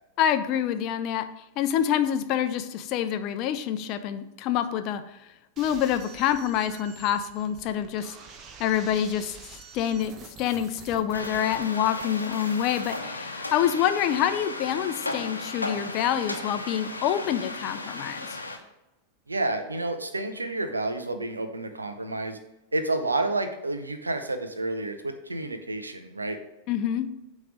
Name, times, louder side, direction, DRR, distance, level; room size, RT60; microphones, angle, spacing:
voice 1, 0.2-1.2 1.6-5.0 5.6-8.2 8.6-9.4 9.7-10.1 10.4-18.4 26.7-27.1, left 10 dB, 40° left, 10 dB, 0.5 m, -26 dB
sound 1, 5.6-13.0, right 6 dB, 30° right, 0.7 m, -48 dB
sound 2, 11.1-18.6, left 2 dB, 80° left, 0.8 m, -35 dB
voice 2, 19.3-22.4 22.7-26.4, right 2 dB, 80° right, 7 dB, 0.7 m, -30 dB
9.1 x 3.2 x 5.1 m, 0.92 s
figure-of-eight pair, 90°, 0 cm